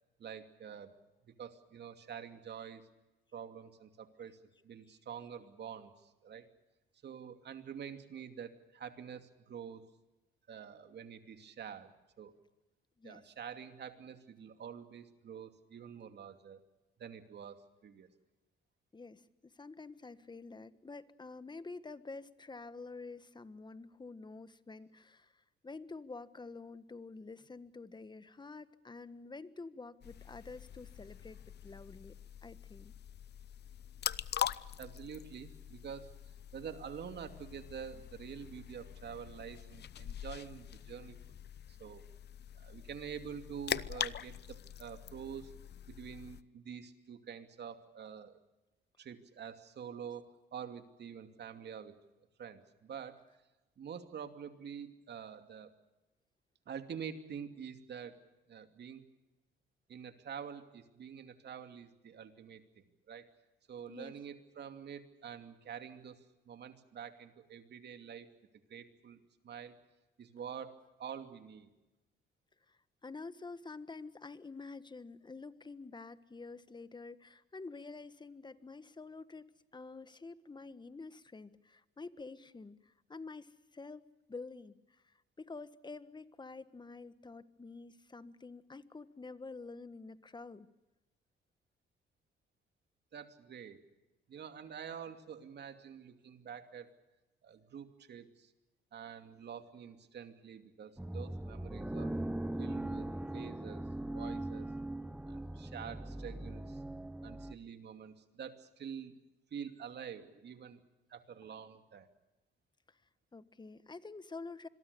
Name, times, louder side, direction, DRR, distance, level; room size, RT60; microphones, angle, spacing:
voice 1, 0.2-0.9 1.4-2.8 3.3-6.5 7.0-9.8 10.5-12.3 13.0-16.6 17.0-18.1 34.8-36.1 36.5-41.4 41.7-42.0 42.5-45.6 45.9-48.4 49.0-52.0 52.4-53.2 53.8-55.7 56.7-58.2 58.5-59.0 59.9-63.2 63.7-66.2 66.5-68.3 68.7-69.2 69.4-69.8 70.2-71.7 93.1-93.8 94.3-96.9 97.4-98.5 98.9-102.1 102.6-104.7 105.3-106.8 107.2-109.2 109.5-110.8 111.1-112.1, right 7 dB, 60° right, 8 dB, 2.7 m, -47 dB
voice 2, 18.9-32.1 32.4-32.9 63.9-64.2 72.7-90.7 112.9-113.0 113.3-114.7, left 3 dB, 20° left, 14 dB, 1.4 m, -48 dB
sound 1, 30.0-46.4, left 10 dB, 55° left, 0.8 m, -43 dB
sound 2, 101.0-107.5, right 1 dB, 5° right, 0.9 m, -40 dB
26.0 x 22.5 x 6.9 m, 1.0 s
cardioid pair, 90°, 20 cm